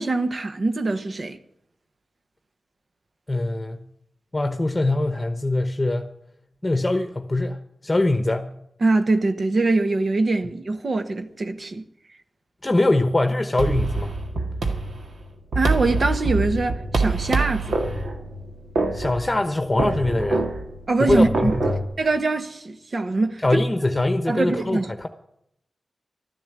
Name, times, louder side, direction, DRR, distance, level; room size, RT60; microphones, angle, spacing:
voice 1, 0.0-1.4 8.8-11.9 15.5-17.8 20.9-21.5 22.0-23.6 24.3-24.9, right 3 dB, 55° right, 1.1 m, -23 dB
voice 2, 3.3-3.8 4.3-6.1 6.6-8.5 12.6-14.1 18.9-20.4 21.0-21.8 23.4-25.1, left 2 dB, 25° left, 1.0 m, -23 dB
sound 1, 13.6-21.9, right 3 dB, 80° right, 2.0 m, -26 dB
12.5 x 10.5 x 8.1 m
cardioid pair, 65°, 0 cm